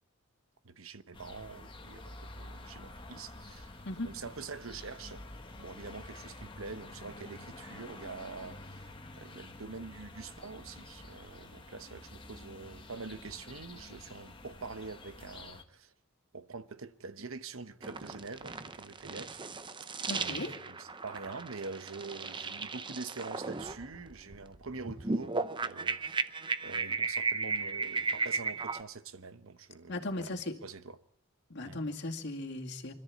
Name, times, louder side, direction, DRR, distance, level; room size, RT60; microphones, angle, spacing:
voice 1, 0.6-5.3 5.6-15.9 16.3-19.4 20.1-30.3 30.6-31.0 31.6-31.8, right 4 dB, 75° right, 1.1 m, -45 dB
sound 1, 1.1-15.6, left 2 dB, 25° left, 1.6 m, -49 dB
sound 2, 17.8-28.8, right 4 dB, 20° right, 0.7 m, -35 dB
voice 2, 20.1-20.5 29.9-30.5 31.5-32.9, left 2 dB, 55° left, 2.3 m, -37 dB
25.5 x 13.5 x 8.5 m
head